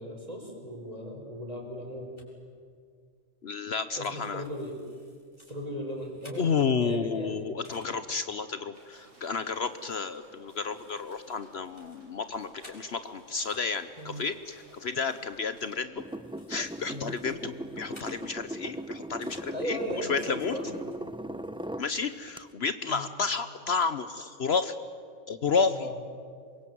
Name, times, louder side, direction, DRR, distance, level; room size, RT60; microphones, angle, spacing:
voice 1, 0.0-2.1 3.9-4.8 5.5-7.4 14.0-14.2 16.9-17.2 19.5-20.8 22.9-23.1 25.7-25.9, equal, 30° right, 1 dB, 5.2 m, -37 dB
sound 1, 2.2-2.3 3.8-4.0 4.2-6.8 7.4-7.9 8.5-8.6 8.9-9.2 10.1-10.3 10.6-13.7 14.0-19.6 19.9-20.0 20.9-21.0 21.2-21.7, left 1 dB, 20° left, 6.8 m, -57 dB
voice 2, 3.4-4.4 6.4-16.0 16.5-20.6 21.8-24.7 25.3-25.9, left 5 dB, 60° left, 11 dB, 1.1 m, -31 dB
sound 2, 8.7-15.8, right 1 dB, 75° right, 6.0 m, -58 dB
sound 3, 16.0-21.9 22.4-22.5, right 1 dB, 5° right, 0.4 m, -39 dB
26.5 x 22.5 x 9.3 m, 2.1 s
omnidirectional pair, 1.3 m